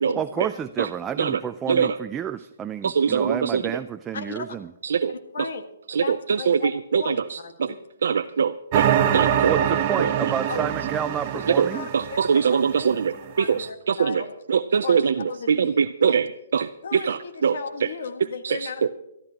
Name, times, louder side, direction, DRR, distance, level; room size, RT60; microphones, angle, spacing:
voice 1, 0.1-4.7 9.5-11.9, right 8 dB, 15° right, 9 dB, 0.4 m, -30 dB
voice 2, 2.8-3.6 4.8-5.1 5.9-6.2 6.5-7.4 8.0-8.8 9.1-9.6 11.6-11.7 11.9-13.6 13.9-14.2 14.5-15.1 15.5-17.5 18.4-18.6, right 6 dB, 70° right, 9 dB, 0.5 m, -22 dB
voice 3, 4.1-4.5 5.1-5.6 5.9-7.8 9.5-9.7 10.0-10.1 10.5-10.6 11.3-11.4 11.7-13.0 13.4-14.4 14.8-15.7 16.0-16.2 16.8-18.9, left 5 dB, 65° left, 7 dB, 1.5 m, -36 dB
sound 1, 8.7-13.2, right 10 dB, 35° right, 0.9 m, -24 dB
23.0 x 13.5 x 2.9 m, 0.87 s
hypercardioid pair, 155°, 0 cm